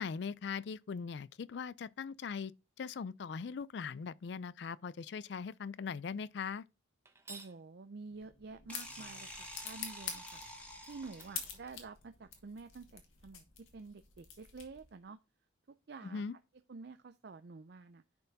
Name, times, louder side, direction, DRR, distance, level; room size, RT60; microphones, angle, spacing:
voice 1, 0.0-2.5 2.8-6.6 16.0-16.3, left 5 dB, 60° left, 0.4 m, -40 dB
sound 1, 7.0-7.6 10.5-10.6 11.0-12.4, right 3 dB, 15° right, 1.0 m, -54 dB
voice 2, 7.3-10.4 10.8-15.2 15.7-16.2 16.7-18.0, right 4 dB, 55° right, 0.5 m, -49 dB
sound 2, 8.1-15.0, left 7 dB, 85° left, 2.0 m, -48 dB
sound 3, 8.7-11.6, equal, 5° left, 1.9 m, -49 dB
10.5 x 4.5 x 4.0 m
head